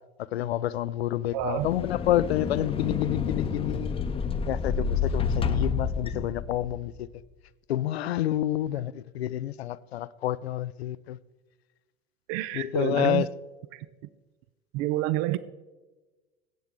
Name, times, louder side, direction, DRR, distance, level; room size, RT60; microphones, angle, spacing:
voice 1, 0.3-4.1 4.5-6.9 7.7-11.2 12.5-13.3, left 13 dB, 80° left, 0.5 m, -28 dB
sound 1, 1.3-7.0, left 5 dB, 20° left, 0.7 m, -30 dB
voice 2, 1.3-1.7 12.3-13.3 13.7-13.9 14.7-15.4, right 14 dB, 50° right, 0.5 m, -28 dB
17.0 x 7.9 x 3.7 m
hypercardioid pair, 85°, 31 cm